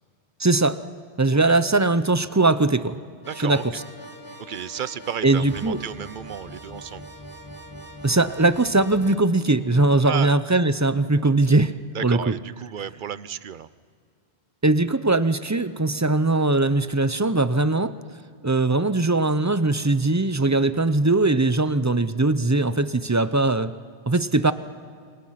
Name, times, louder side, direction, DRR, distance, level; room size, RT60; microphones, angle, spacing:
voice 1, 0.4-0.8 1.2-3.0 3.4-3.7 5.2-5.8 8.0-11.7 12.0-12.3 14.6-17.9 18.4-23.7 24.1-24.5, right 2 dB, 20° right, 13 dB, 0.6 m, -20 dB
sound 1, 3.2-9.2, equal, 20° left, 2.3 m, -42 dB
voice 2, 3.2-3.6 4.4-7.1 10.0-10.3 11.9-13.7, right 8 dB, 55° right, 16 dB, 0.8 m, -33 dB
29.0 x 25.0 x 5.9 m, 2.2 s
omnidirectional pair, 1.1 m